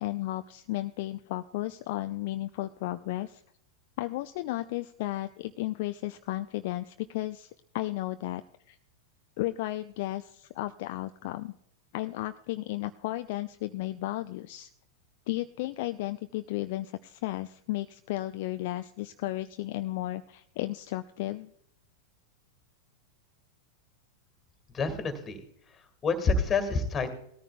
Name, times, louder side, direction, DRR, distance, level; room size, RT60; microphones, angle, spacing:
voice 1, 0.0-3.4 4.0-8.4 8.7-8.8 9.4-11.5 11.9-14.7 15.3-21.5, left 16 dB, 50° left, 10 dB, 0.4 m, -34 dB
voice 2, 24.7-25.4 25.7-27.1, left 4 dB, 20° left, 8 dB, 2.0 m, -28 dB
19.0 x 13.5 x 2.2 m, 0.72 s
figure-of-eight pair, 90°, 0 cm